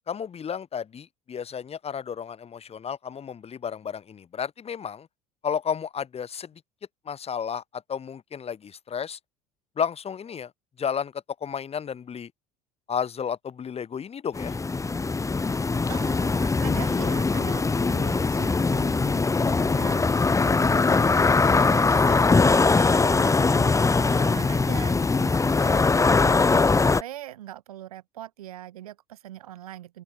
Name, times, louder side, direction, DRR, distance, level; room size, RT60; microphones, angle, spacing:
voice 1, 0.1-5.1 5.4-6.6 7.1-9.2 9.8-10.5 10.8-12.3 12.9-14.6, left 7 dB, 30° left, 5.7 m, -32 dB
sound 1, 14.3-27.0, left 4 dB, 15° left, 1.9 m, -21 dB
voice 2, 15.9-30.0, right 13 dB, 70° right, 6.8 m, -42 dB
open air
figure-of-eight pair, 65°, 19 cm